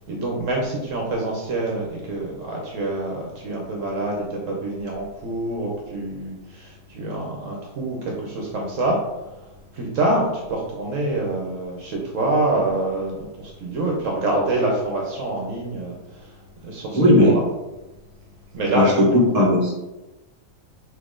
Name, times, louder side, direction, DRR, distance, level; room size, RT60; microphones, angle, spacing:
voice 1, 0.1-9.0 9.7-16.3 16.6-17.4 18.5-19.2, right 2 dB, 65° right, -1 dB, 1.1 m, -26 dB
voice 2, 16.9-17.4 18.7-19.7, left 1 dB, 30° right, -4 dB, 1.2 m, -16 dB
4.1 x 3.0 x 3.7 m, 1.0 s
omnidirectional pair, 1.5 m